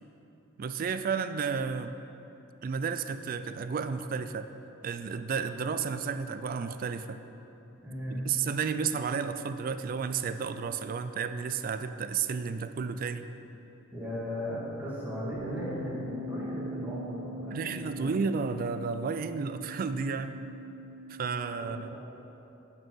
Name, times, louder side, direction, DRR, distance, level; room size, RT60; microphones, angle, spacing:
voice 1, 0.6-2.0 2.6-4.5 4.8-7.2 8.1-13.2 17.5-20.4 21.1-22.0, right 5 dB, 40° right, 10 dB, 0.3 m, -32 dB
voice 2, 7.8-8.2 13.9-18.4 21.7-22.0, equal, 10° right, -8 dB, 2.0 m, -37 dB
sound 1, 15.3-21.6, equal, 70° left, 1.5 m, -42 dB
9.4 x 4.5 x 6.1 m, 3.0 s
head